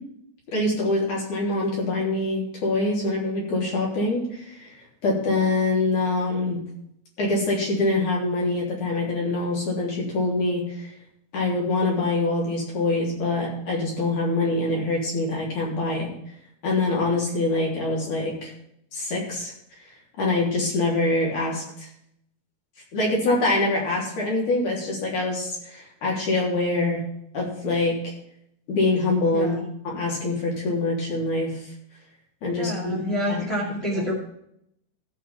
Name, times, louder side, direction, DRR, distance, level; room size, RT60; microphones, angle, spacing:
voice 1, 0.5-4.7 5.0-6.6 7.2-10.9 11.3-16.1 16.6-18.5 18.9-19.5 20.2-21.9 22.9-27.0 27.3-28.1 28.7-29.6 29.8-31.6 32.4-33.4 33.9-34.1, left 2 dB, 50° left, -3 dB, 4.6 m, -24 dB
voice 2, 29.3-29.7 32.5-34.1, equal, 20° left, -6 dB, 1.8 m, -28 dB
15.0 x 5.6 x 5.9 m, 0.74 s
omnidirectional pair, 4.7 m